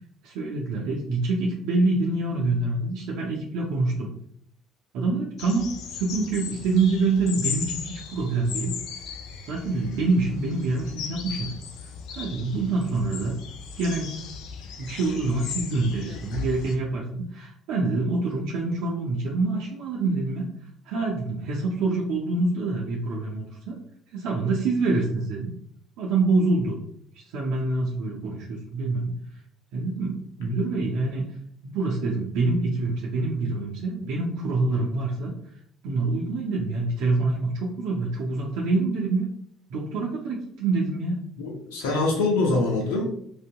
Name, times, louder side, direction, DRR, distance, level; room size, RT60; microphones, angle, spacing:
voice 1, 0.2-4.1 4.9-8.7 9.5-11.5 12.2-13.3 13.8-14.2 14.8-20.5 20.9-23.8 24.1-25.5 26.0-26.8 27.3-29.1 29.7-31.2 31.6-35.3 35.8-39.3 39.7-41.2, right 3 dB, 75° right, -3 dB, 0.6 m, -26 dB
sound 1, 5.4-16.8, left 6 dB, 70° left, 0.4 m, -37 dB
voice 2, 41.4-43.0, left 2 dB, 90° left, -1 dB, 0.8 m, -24 dB
3.3 x 2.7 x 2.2 m, 0.66 s
supercardioid pair, 70°, 0 cm